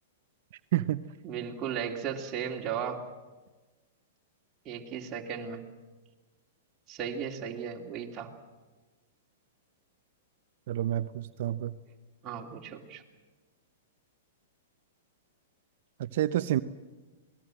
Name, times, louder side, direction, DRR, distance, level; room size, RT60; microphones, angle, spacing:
voice 1, 0.7-1.0 10.7-11.7 16.0-16.6, right 13 dB, 60° right, 11 dB, 0.8 m, -29 dB
voice 2, 1.2-3.0 4.6-5.6 6.9-8.3 12.2-13.0, right 7 dB, 30° right, -1 dB, 2.8 m, -36 dB
27.5 x 19.0 x 7.8 m, 1.3 s
hypercardioid pair, 120°, 0 cm